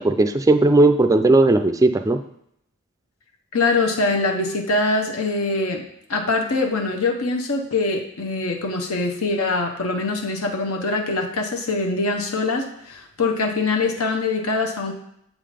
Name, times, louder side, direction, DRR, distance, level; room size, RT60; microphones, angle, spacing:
voice 1, 0.0-2.2, right 2 dB, 15° right, 7 dB, 0.4 m, -16 dB
voice 2, 3.5-5.8 6.1-14.9, left 3 dB, 70° left, 2 dB, 0.9 m, -23 dB
7.5 x 3.8 x 5.0 m, 0.74 s
head